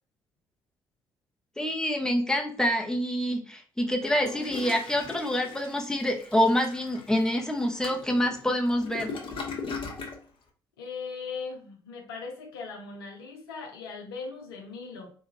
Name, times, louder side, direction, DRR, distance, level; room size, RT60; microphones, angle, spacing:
voice 1, 1.6-9.1, equal, 5° left, 1 dB, 0.9 m, -26 dB
Toilet flush, 4.0-10.2, left 4 dB, 45° left, 0.9 m, -39 dB
voice 2, 10.8-15.1, left 4 dB, 85° left, 1 dB, 0.7 m, -39 dB
4.3 x 2.4 x 2.9 m, 0.43 s
hypercardioid pair, 45°, 12 cm